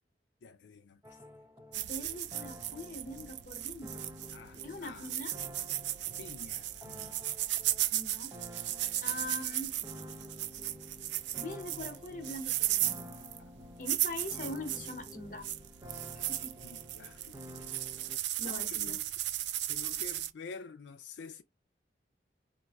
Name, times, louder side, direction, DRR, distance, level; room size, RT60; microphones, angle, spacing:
voice 1, 0.4-1.2 4.3-5.1 6.2-7.1 16.6-17.2 18.4-19.1 19.7-21.4, left 4 dB, 85° left, 0.4 m, -48 dB
sound 1, 1.0-18.2, equal, 15° right, 0.5 m, -50 dB
voice 2, 1.7-4.1 4.6-5.3 7.9-8.3 9.0-9.8 11.4-13.1 13.8-15.5 16.1-16.5 18.4-19.0, left 1 dB, 45° left, 0.9 m, -42 dB
sound 2, 1.7-20.3, right 13 dB, 80° right, 0.4 m, -36 dB
4.1 x 2.5 x 2.3 m
head